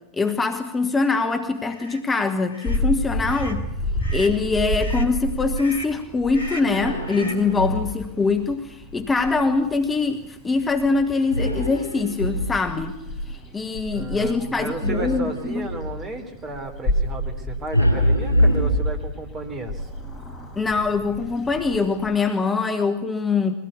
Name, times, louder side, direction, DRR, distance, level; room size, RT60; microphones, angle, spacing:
voice 1, 0.2-3.6 4.1-13.0 13.3-15.7 20.6-23.5, left 4 dB, 15° left, 7 dB, 1.3 m, -23 dB
sound 1, 1.7-2.0 2.5-2.8 3.2-3.6 4.0-4.4 4.8-5.1 5.6-6.0 6.3-6.8 7.1-7.5, equal, 70° left, 2.8 m, -38 dB
Purr / Meow, 2.7-22.2, equal, 30° left, 7.5 m, -32 dB
sound 2, 6.6-8.1 11.3-12.9 14.8-16.0 17.7-19.4, equal, 90° right, 7.6 m, -24 dB
voice 2, 13.9-19.9, right 3 dB, 25° right, 5 dB, 3.6 m, -33 dB
22.5 x 17.0 x 8.2 m, 0.95 s
figure-of-eight pair, 90°, 0 cm